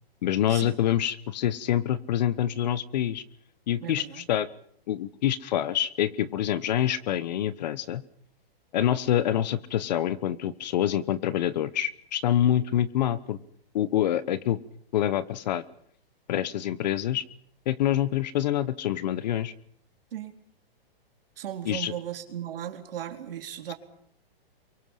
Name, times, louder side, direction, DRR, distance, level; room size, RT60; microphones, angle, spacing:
voice 1, 0.2-3.2 3.7-4.5 4.9-8.0 8.7-13.4 13.7-14.6 14.9-15.6 16.3-17.2 17.7-19.5 21.6-21.9, left 11 dB, 45° left, 16 dB, 1.1 m, -26 dB
voice 2, 3.8-4.2 20.1-20.3 21.4-23.7, right 10 dB, 65° right, 4 dB, 3.8 m, -36 dB
27.5 x 23.5 x 5.7 m, 0.67 s
hypercardioid pair, 165°, 31 cm